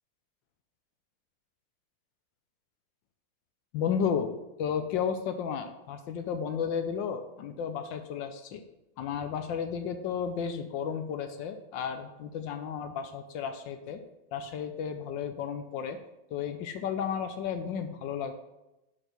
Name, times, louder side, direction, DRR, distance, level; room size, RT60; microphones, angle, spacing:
voice 1, 3.7-8.6 9.0-14.0 14.3-16.0 16.3-18.3, left 7 dB, 70° left, 7 dB, 1.2 m, -33 dB
6.6 x 4.5 x 5.8 m, 0.96 s
omnidirectional pair, 2.4 m